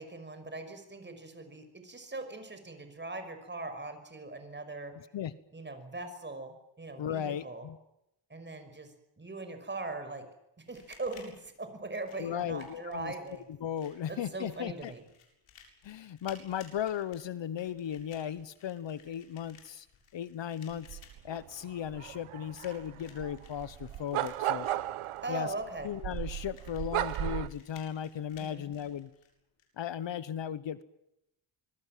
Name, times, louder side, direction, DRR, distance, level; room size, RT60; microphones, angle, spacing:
voice 1, 0.0-5.0 5.5-7.7 8.3-10.3 10.7-13.5 14.1-15.0 25.2-25.9 28.4-28.6, right 2 dB, 20° right, 8 dB, 5.7 m, -40 dB
voice 2, 7.0-7.8 12.2-13.1 13.6-14.9 15.8-19.9 20.1-24.7 25.3-25.5 25.8-29.1 29.8-30.8, left 9 dB, 60° left, 16 dB, 1.2 m, -36 dB
sound 1, 10.6-29.6, left 6 dB, 75° left, 7.8 m, -59 dB
sound 2, 20.9-27.5, right 13 dB, 80° right, 1.1 m, -36 dB
26.0 x 22.0 x 7.5 m, 0.84 s
cardioid pair, 130°, 50 cm